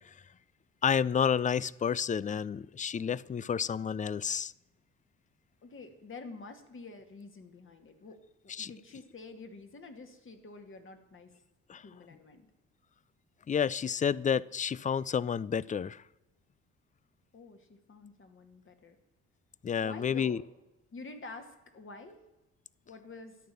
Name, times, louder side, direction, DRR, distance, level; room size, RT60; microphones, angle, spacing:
voice 1, 0.8-4.5 8.6-8.7 11.7-11.8 13.5-16.0 19.6-20.4, left 7 dB, 25° left, 0.4 m, -30 dB
voice 2, 5.6-11.3 11.8-12.5 17.3-19.0 19.8-20.5 20.9-22.2 22.9-23.4, left 3 dB, 40° left, 2.2 m, -48 dB
13.0 x 9.3 x 6.9 m
cardioid pair, 90°, 30 cm